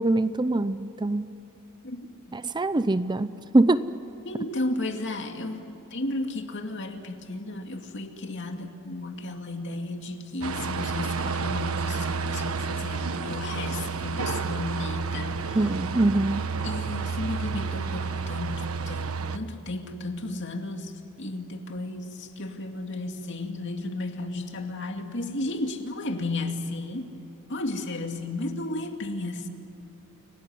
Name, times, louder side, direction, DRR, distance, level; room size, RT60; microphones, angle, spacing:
voice 1, 0.0-1.3 2.3-3.8 15.5-16.5, right 2 dB, 20° right, 13 dB, 0.6 m, -23 dB
voice 2, 1.8-2.4 4.2-15.6 16.6-27.1 27.5-29.5, left 2 dB, 60° left, 4 dB, 2.3 m, -34 dB
sound 1, 10.4-19.4, right 5 dB, 85° right, 1.2 m, -30 dB
29.5 x 18.0 x 9.5 m, 2.9 s
head